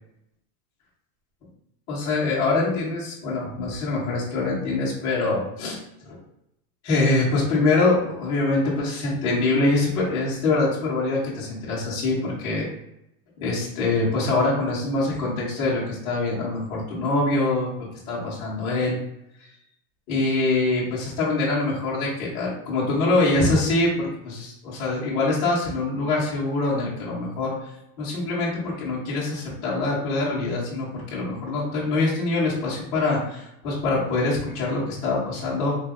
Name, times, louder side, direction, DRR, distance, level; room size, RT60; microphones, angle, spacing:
voice 1, 1.9-6.2 6.8-12.7 13.4-19.0 20.1-27.5 28.0-35.8, left 2 dB, 10° left, -8 dB, 0.4 m, -24 dB
3.9 x 2.2 x 3.3 m, 0.82 s
supercardioid pair, 175°, 45 cm